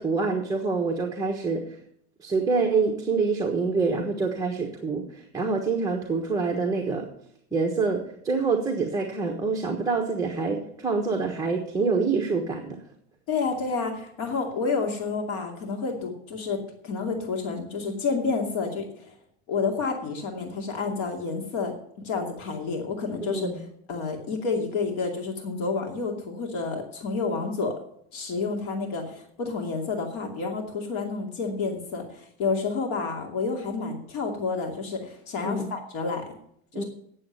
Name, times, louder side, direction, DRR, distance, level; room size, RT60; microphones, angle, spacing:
voice 1, 0.0-1.8 2.2-7.1 7.5-12.8 23.2-23.6 35.4-35.7 36.7-36.8, right 4 dB, 10° right, 0 dB, 1.3 m, -26 dB
voice 2, 13.3-19.1 19.5-23.6 23.9-27.8 28.1-36.2 36.7-36.8, left 4 dB, 60° left, 2 dB, 2.6 m, -29 dB
9.8 x 7.6 x 8.1 m, 0.68 s
cardioid pair, 155°, 33 cm